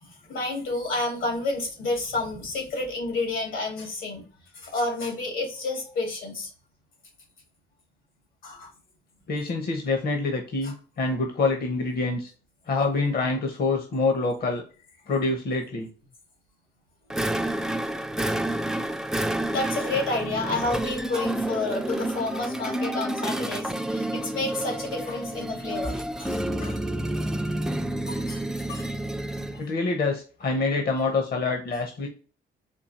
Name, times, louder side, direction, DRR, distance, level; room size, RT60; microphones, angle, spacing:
voice 1, 0.0-4.2 4.5-6.5 8.4-8.7 10.6-10.7 17.6-17.7 19.1-26.8 28.1-28.9 29.3-29.6, left 2 dB, 80° left, 1 dB, 2.4 m, -30 dB
voice 2, 9.3-12.3 12.7-14.6 15.1-15.9 29.6-32.1, left 3 dB, 50° left, 3 dB, 0.9 m, -26 dB
sound 1, 17.1-29.6, right 1 dB, 5° right, 0.4 m, -29 dB
4.4 x 2.8 x 4.1 m, 0.38 s
cardioid pair, 90°, 20 cm